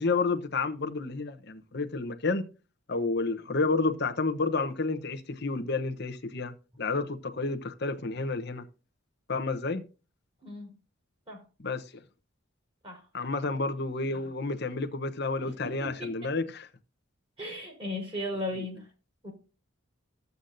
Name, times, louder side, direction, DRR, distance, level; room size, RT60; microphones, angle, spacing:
voice 1, 0.0-2.4 2.9-8.7 9.3-9.8 11.6-12.0 13.1-16.7, left 3 dB, 50° left, 0.9 m, -30 dB
voice 2, 10.4-10.7 11.3-11.4 12.8-13.1 15.4-16.1 17.4-18.9 19.2-19.3, left 1 dB, 25° right, 4.0 m, -36 dB
13.0 x 8.1 x 2.6 m
head